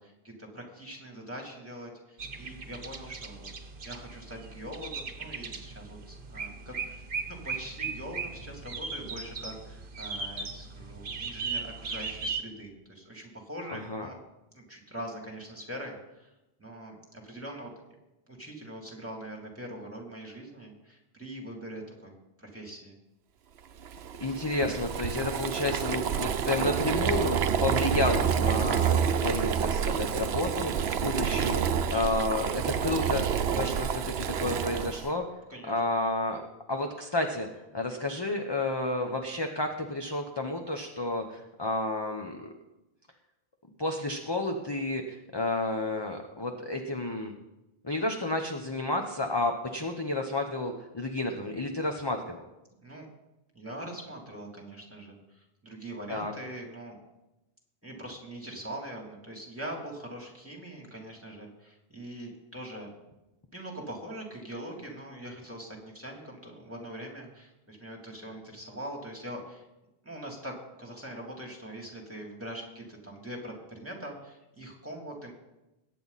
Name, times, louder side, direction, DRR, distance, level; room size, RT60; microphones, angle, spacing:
voice 1, 0.0-3.5 3.8-7.0 7.3-14.2 14.5-16.3 16.6-17.7 18.3-22.9 31.9-32.2 35.5-36.2 52.8-53.1 53.5-57.0 57.8-62.9 63.5-69.6 70.0-75.3, right 1 dB, 15° right, 0 dB, 3.0 m, -42 dB
sound 1, 2.2-12.4, right 4 dB, 55° right, 1.2 m, -38 dB
voice 2, 13.7-14.1 24.2-33.2 33.5-35.2 35.7-36.4 36.7-37.5 37.7-42.5 43.8-47.3 47.8-52.4 56.1-56.3, left 2 dB, 25° left, 3 dB, 1.0 m, -31 dB
Boiling, 23.8-35.1, right 8 dB, 75° right, 0.9 m, -28 dB
22.0 x 9.3 x 4.2 m, 0.97 s
omnidirectional pair, 1.1 m